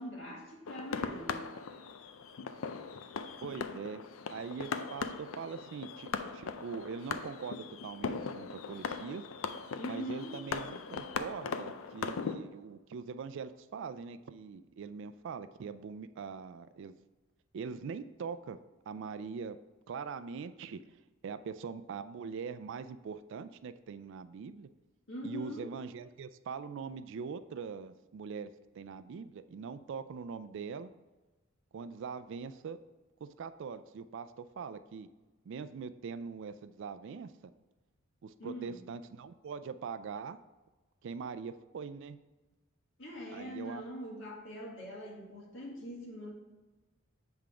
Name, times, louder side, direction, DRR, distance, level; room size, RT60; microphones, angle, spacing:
voice 1, 0.0-1.5 9.8-10.4 25.1-25.7 38.4-38.8 43.0-46.3, equal, 65° left, -2 dB, 1.8 m, -42 dB
sound 1, 0.7-12.4, left 5 dB, 85° left, 0.4 m, -39 dB
voice 2, 3.4-4.0 4.3-9.2 9.9-17.0 17.5-18.6 18.9-19.6 19.9-20.8 21.2-24.7 25.2-28.5 28.8-30.9 31.7-32.8 33.4-35.1 35.5-37.5 38.2-40.4 41.0-42.2 43.3-43.8, right 5 dB, 65° right, 12 dB, 0.3 m, -42 dB
7.5 x 3.6 x 4.9 m, 1.2 s
head